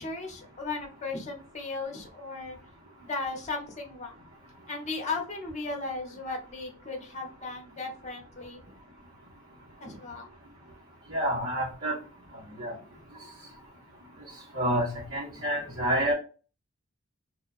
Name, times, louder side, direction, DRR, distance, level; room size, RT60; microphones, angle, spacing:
voice 1, 0.0-2.6 3.0-4.1 4.7-8.7 9.8-10.3 12.6-12.7 15.3-15.4, left 3 dB, 35° left, 2 dB, 0.8 m, -36 dB
voice 2, 11.1-11.9 12.6-12.7 14.5-16.1, right 1 dB, 85° right, -8 dB, 1.3 m, -28 dB
2.7 x 2.2 x 4.0 m, 0.36 s
head